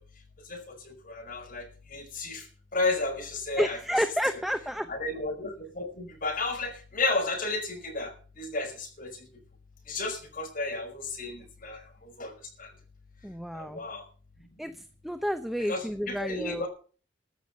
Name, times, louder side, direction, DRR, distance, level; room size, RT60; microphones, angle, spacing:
voice 1, 0.5-2.4 2.7-3.8 4.3-4.4 4.9-9.1 9.9-12.3 12.6-12.7 13.5-14.0 15.7-16.7, left 2 dB, 45° left, 2 dB, 5.4 m, -33 dB
voice 2, 3.6-4.9 13.2-13.8 14.6-16.7, equal, ahead, 8 dB, 0.7 m, -30 dB
14.0 x 7.0 x 9.1 m, 0.40 s
head